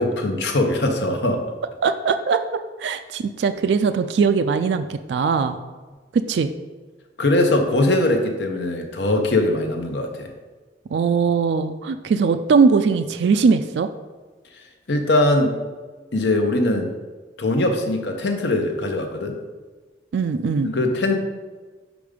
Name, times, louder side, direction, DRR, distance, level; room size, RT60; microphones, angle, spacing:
voice 1, 0.0-1.4 7.2-10.3 14.9-15.6 16.1-16.9 17.4-19.4 20.6-21.2, left 2 dB, 75° left, 4 dB, 0.8 m, -21 dB
voice 2, 1.8-5.6 6.1-6.5 10.9-13.9 20.1-20.7, right 5 dB, 75° right, 8 dB, 0.3 m, -20 dB
5.1 x 4.6 x 5.1 m, 1.4 s
head